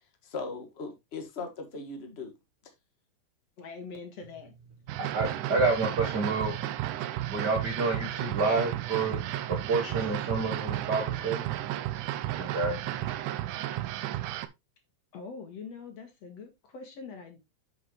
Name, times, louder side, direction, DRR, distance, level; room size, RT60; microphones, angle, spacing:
voice 1, 0.2-2.3, left 3 dB, 25° left, 1.4 m, -38 dB
voice 2, 3.6-4.5 5.4-6.3 15.1-17.4, left 5 dB, 55° left, 2.9 m, -44 dB
sound 1, 4.9-14.5, right 14 dB, 75° right, 2.1 m, -33 dB
voice 3, 5.0-6.5 7.3-11.5 12.3-13.1, right 3 dB, 60° right, 1.0 m, -29 dB
8.0 x 7.4 x 3.1 m
omnidirectional pair, 3.8 m